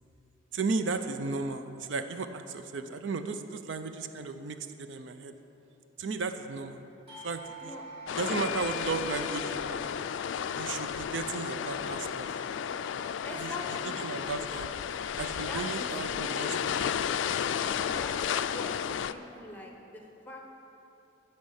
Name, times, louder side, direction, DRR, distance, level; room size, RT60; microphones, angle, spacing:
voice 1, 0.5-5.3 6.0-6.8 7.1-7.7 8.2-9.8 10.5-12.4 13.4-14.7 15.2-17.0, right 4 dB, 75° right, 9 dB, 0.5 m, -35 dB
Doorbell, 7.1-12.4, left 2 dB, 35° right, 2.1 m, -46 dB
sound 1, 8.1-19.1, left 8 dB, 70° left, 0.3 m, -33 dB
voice 2, 8.1-8.8 13.2-14.0 15.5-16.4 17.9-20.4, left 2 dB, 10° left, 0 dB, 1.0 m, -43 dB
11.5 x 4.2 x 8.0 m, 2.9 s
head